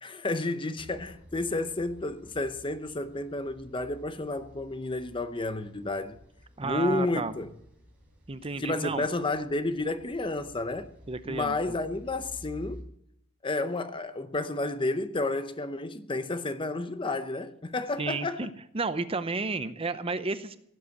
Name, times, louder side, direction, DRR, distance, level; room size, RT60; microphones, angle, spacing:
voice 1, 0.0-6.2 6.6-7.5 8.6-10.9 11.3-12.9 13.4-18.5, left 2 dB, 25° left, 0.7 m, -31 dB
sound 1, 0.8-12.8, equal, 5° right, 4.2 m, -52 dB
voice 2, 6.6-7.3 8.3-9.1 11.1-11.7 18.0-18.5 18.7-20.6, right 3 dB, 25° right, 0.7 m, -32 dB
16.5 x 8.1 x 8.4 m
head